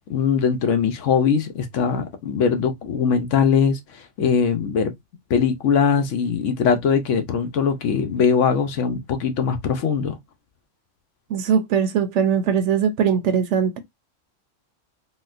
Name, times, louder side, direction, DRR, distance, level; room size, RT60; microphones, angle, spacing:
voice 1, 0.1-4.9 5.3-10.2, left 6 dB, 75° left, 1.0 m, -21 dB
voice 2, 11.3-13.8, right 7 dB, 70° right, 0.9 m, -20 dB
4.0 x 2.2 x 2.5 m
omnidirectional pair, 1.3 m